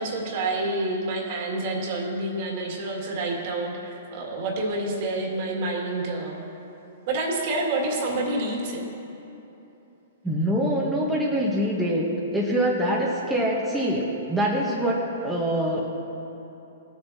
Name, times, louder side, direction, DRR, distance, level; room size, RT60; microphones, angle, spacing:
voice 1, 0.0-6.5 7.1-8.8, right 2 dB, 50° right, -1 dB, 2.0 m, -28 dB
voice 2, 10.2-15.9, equal, 5° right, -5 dB, 1.0 m, -24 dB
18.0 x 6.9 x 2.8 m, 2.9 s
hypercardioid pair, 135°, 0 cm